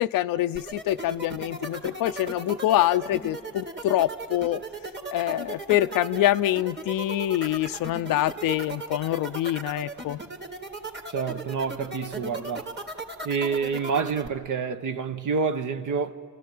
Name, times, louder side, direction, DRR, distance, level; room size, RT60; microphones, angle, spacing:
voice 1, 0.0-4.6 5.1-10.2, left 14 dB, 85° left, 0.5 m, -25 dB
sound 1, 0.5-14.3, right 2 dB, 30° right, 2.4 m, -36 dB
voice 2, 11.1-12.7 13.2-16.2, right 5 dB, 65° right, 1.1 m, -28 dB
29.0 x 14.5 x 9.3 m
cardioid pair, 65°, 33 cm